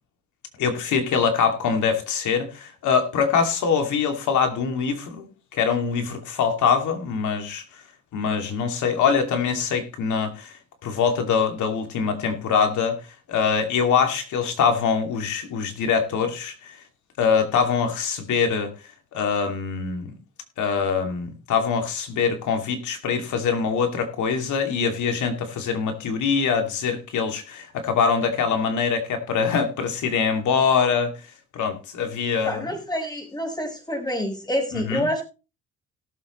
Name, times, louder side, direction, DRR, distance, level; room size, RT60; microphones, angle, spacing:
voice 1, 0.6-7.6 8.1-10.5 10.8-13.0 13.3-16.8 17.2-18.7 19.1-20.2 20.6-31.1 31.5-32.8 34.7-35.1, left 6 dB, 75° left, 5 dB, 2.6 m, -23 dB
voice 2, 32.5-35.2, equal, 15° left, 3 dB, 5.5 m, -27 dB
18.0 x 7.6 x 3.1 m, 0.31 s
cardioid pair, 90°, 30 cm